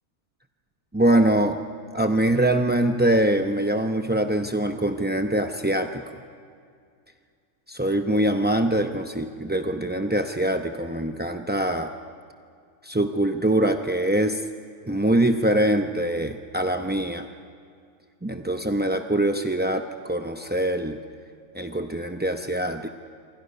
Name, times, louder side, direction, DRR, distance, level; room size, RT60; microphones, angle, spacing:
voice 1, 0.9-1.6 1.9-6.0 7.7-11.9 12.8-14.4 14.9-17.3 18.2-21.0 21.5-22.9, right 1 dB, 15° right, 5 dB, 0.3 m, -23 dB
27.5 x 24.5 x 5.5 m, 2.3 s
omnidirectional pair, 1.6 m